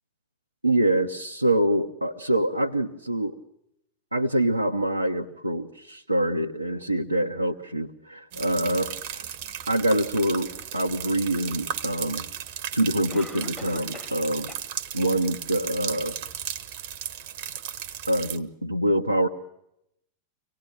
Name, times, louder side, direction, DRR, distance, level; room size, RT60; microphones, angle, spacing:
voice 1, 0.6-3.4 4.1-9.2 9.7-12.3 12.7-14.5 14.9-16.1 18.1-19.3, right 1 dB, 85° right, 1 dB, 0.9 m, -25 dB
sound 1, 8.3-18.4, right 9 dB, 50° right, 1.1 m, -35 dB
Cough, 12.0-12.1 13.1-14.2 14.5-14.6 15.1-15.2 15.8-15.9, left 4 dB, 15° left, 2.6 m, -42 dB
25.0 x 18.0 x 8.8 m, 0.82 s
figure-of-eight pair, 90°, 0 cm